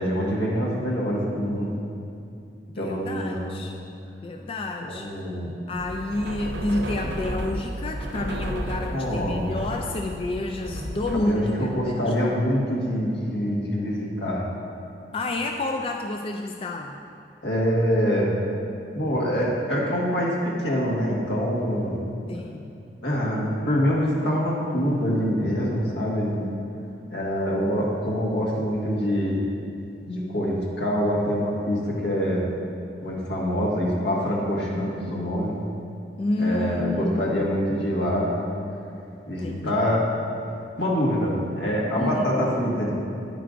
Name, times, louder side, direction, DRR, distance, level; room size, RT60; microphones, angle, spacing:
voice 1, 0.0-1.7 2.8-3.5 4.8-5.5 8.9-9.5 11.1-14.4 17.4-18.3 18.9-21.9 23.0-26.4 27.1-29.4 30.0-32.4 33.0-35.5 36.4-38.4 39.3-40.1 40.8-42.9, equal, 80° left, -4 dB, 1.7 m, -25 dB
voice 2, 2.7-3.7 4.2-5.1 5.7-12.4 15.1-16.9 22.3-22.7 36.2-37.4 39.4-39.9 42.0-42.3, left 2 dB, 30° left, 3 dB, 0.3 m, -29 dB
sound 1, 5.8-11.2, right 1 dB, 80° right, 0.6 m, -33 dB
10.0 x 8.9 x 2.6 m, 2.6 s
head